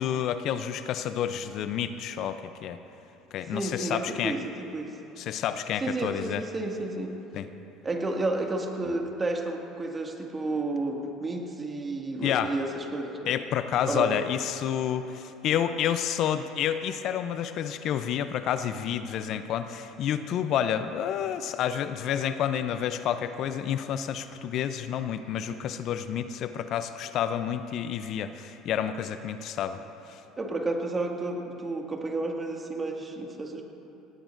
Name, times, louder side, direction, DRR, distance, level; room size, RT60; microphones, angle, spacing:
voice 1, 0.0-2.8 3.3-4.4 5.2-6.4 7.3-7.5 12.2-12.5 13.3-29.8 30.1-30.2, left 9 dB, 55° left, 10 dB, 0.6 m, -29 dB
voice 2, 3.5-4.9 5.8-7.1 7.8-13.3 13.9-14.1 30.4-33.6, right 2 dB, 25° right, 2 dB, 2.0 m, -31 dB
19.0 x 18.5 x 2.6 m, 2.9 s
hypercardioid pair, 70°, 0 cm